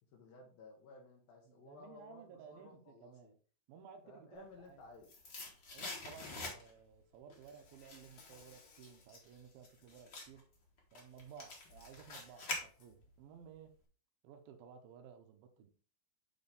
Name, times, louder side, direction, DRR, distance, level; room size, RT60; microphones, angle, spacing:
voice 1, 0.1-3.3 4.0-5.2, left 3 dB, 75° left, 3.1 m, -57 dB
voice 2, 1.5-3.3 3.7-4.8 5.7-10.5 10.9-13.7 14.2-15.7, right 7 dB, 85° right, 2.7 m, -56 dB
sound 1, 4.5-6.9 7.3-13.2 13.5-13.6, left 2 dB, 45° left, 1.6 m, -46 dB
Insect, 7.4-9.1 9.6-9.9 11.1-13.0, left 5 dB, 60° left, 2.4 m, -66 dB
8.6 x 4.1 x 3.5 m
omnidirectional pair, 4.2 m